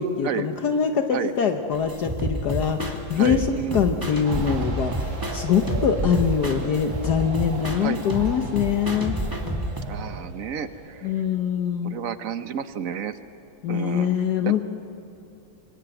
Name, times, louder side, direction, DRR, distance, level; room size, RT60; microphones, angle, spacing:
voice 1, 0.0-3.5 3.7-9.1 11.0-12.0 13.6-14.6, left 7 dB, 60° left, 6 dB, 1.4 m, -24 dB
sound 1, 1.7-9.8, right 1 dB, 10° right, 2.1 m, -29 dB
voice 2, 3.1-3.9 7.8-8.1 9.9-11.1 11.8-13.2 13.7-14.2 14.4-14.6, right 8 dB, 55° right, 11 dB, 1.0 m, -31 dB
sound 2, 4.2-11.6, right 3 dB, 85° right, 3.1 m, -39 dB
26.5 x 22.0 x 9.0 m, 2.7 s
omnidirectional pair, 2.1 m